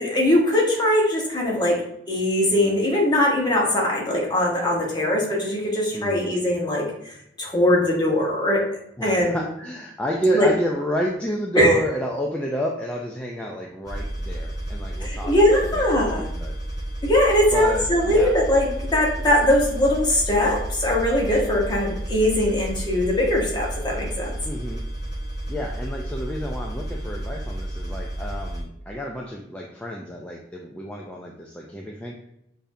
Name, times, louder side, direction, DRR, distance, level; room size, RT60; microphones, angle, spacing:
voice 1, 0.0-6.9 7.4-8.6 9.0-9.4 10.3-10.5 11.6-11.7 15.0-16.3 17.0-24.4, left 1 dB, 25° left, -2 dB, 1.2 m, -21 dB
voice 2, 5.9-6.3 9.0-16.6 17.5-18.3 24.4-24.8 25.5-32.2, equal, 5° left, -1 dB, 0.4 m, -29 dB
sound 1, 13.8-28.6, right 1 dB, 25° right, 1.4 m, -31 dB
6.8 x 2.7 x 2.7 m, 0.77 s
head